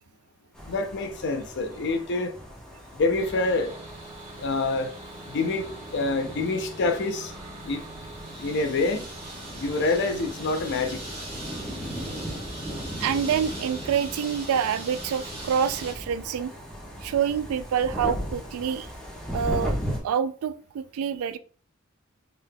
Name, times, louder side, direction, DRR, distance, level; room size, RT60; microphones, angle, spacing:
sound 1, 0.5-20.0, equal, 5° left, 1.0 m, -38 dB
voice 1, 0.7-2.3 3.0-3.7 4.4-4.9 5.3-5.7 5.9-7.3 7.7-7.8 8.4-9.0 9.6-11.0, left 3 dB, 55° left, 0.5 m, -26 dB
sound 2, 3.2-15.9, right 1 dB, 30° right, 1.5 m, -41 dB
voice 2, 13.0-16.5 17.0-18.9 19.3-19.8 20.0-21.4, right 8 dB, 85° right, 0.3 m, -27 dB
3.7 x 3.4 x 2.2 m
head